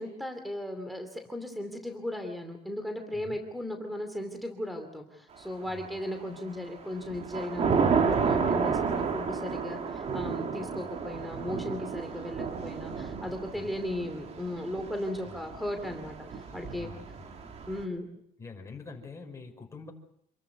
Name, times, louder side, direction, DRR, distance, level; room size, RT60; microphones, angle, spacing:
voice 1, 0.0-16.9 17.7-18.1, left 1 dB, ahead, 6 dB, 2.6 m, -36 dB
voice 2, 5.6-6.0 13.5-13.7 15.2-15.4 16.5-17.6 18.4-19.9, left 4 dB, 15° left, 1 dB, 5.6 m, -46 dB
Thunder / Rain, 5.7-6.3 6.7-17.8, right 5 dB, 40° right, 2.5 m, -31 dB
28.0 x 14.0 x 9.5 m, 0.73 s
cardioid pair, 135°, 18 cm